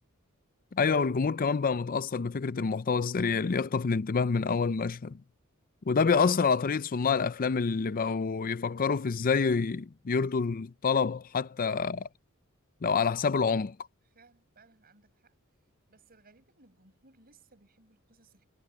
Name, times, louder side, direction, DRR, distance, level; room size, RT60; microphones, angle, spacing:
voice 1, 0.7-5.1 5.9-12.1 12.8-13.8, left 5 dB, 40° left, 0.5 m, -27 dB
voice 2, 14.0-15.3 15.9-18.4, right 3 dB, 45° right, 7.0 m, -62 dB
head